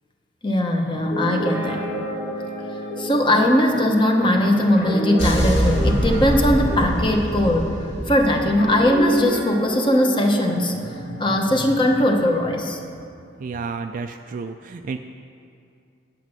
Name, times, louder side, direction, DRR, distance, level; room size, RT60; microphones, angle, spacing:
voice 1, 0.4-1.9 3.0-7.8 8.1-12.8, left 1 dB, 25° left, 2 dB, 0.9 m, -20 dB
Guitar, 0.9-8.1 8.6-12.3, right 1 dB, 50° left, 1.8 m, -31 dB
sound 1, 5.2-9.3, right 1 dB, 85° left, 2.5 m, -24 dB
voice 2, 13.4-15.0, right 4 dB, 45° right, 6 dB, 0.3 m, -31 dB
8.4 x 8.2 x 6.1 m, 2.4 s
head